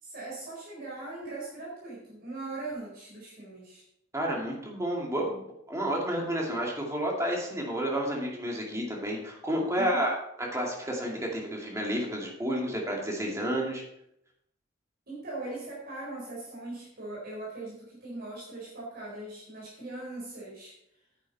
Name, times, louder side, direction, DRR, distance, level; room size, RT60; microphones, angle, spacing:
voice 1, 0.0-3.8 9.7-10.0 15.1-20.7, right 2 dB, 50° right, -6 dB, 4.2 m, -40 dB
voice 2, 4.1-5.4 5.7-13.8, equal, 15° right, -1 dB, 2.4 m, -30 dB
9.6 x 9.2 x 4.2 m, 0.78 s
head